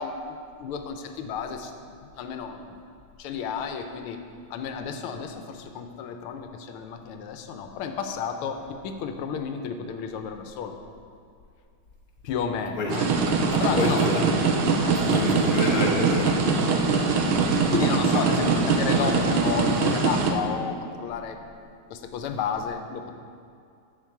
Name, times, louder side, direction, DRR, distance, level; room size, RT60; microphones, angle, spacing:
voice 1, 0.0-2.8 3.2-4.2 4.5-10.7 12.2-13.1 13.6-14.0 14.8-15.4 17.6-23.1, left 6 dB, 90° left, 6 dB, 1.6 m, -32 dB
sound 1, 12.9-20.3, right 4 dB, 80° right, 1.6 m, -22 dB
voice 2, 13.5-14.4 14.9-16.4, left 3 dB, 50° left, 0 dB, 1.5 m, -28 dB
11.5 x 7.1 x 4.6 m, 2.3 s
omnidirectional pair, 2.3 m